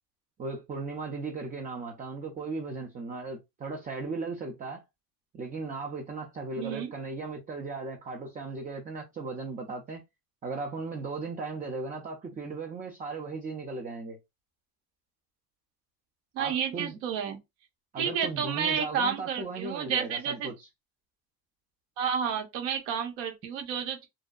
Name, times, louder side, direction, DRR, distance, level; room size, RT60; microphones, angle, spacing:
voice 1, 0.4-4.8 5.3-10.0 10.4-14.2 16.4-17.0 17.9-20.5, right 3 dB, 20° right, 0.4 m, -37 dB
voice 2, 6.6-6.9 16.3-17.4 18.0-20.5 22.0-24.1, right 7 dB, 70° right, 1.0 m, -30 dB
2.6 x 2.1 x 2.3 m
supercardioid pair, 85°, 47 cm